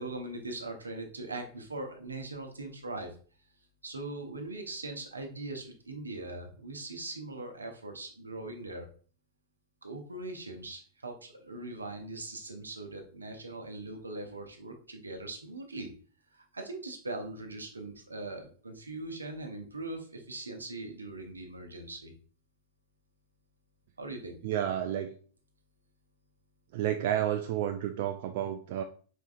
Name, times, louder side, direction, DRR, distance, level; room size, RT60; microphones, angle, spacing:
voice 1, 0.0-3.2 3.8-8.9 9.8-15.9 16.3-22.1 24.0-24.4, right 2 dB, 80° right, 4 dB, 0.8 m, -41 dB
voice 2, 24.4-25.1 26.7-28.8, right 11 dB, 50° right, 6 dB, 0.3 m, -31 dB
4.8 x 4.3 x 2.5 m, 0.42 s
figure-of-eight pair, 90°, 0 cm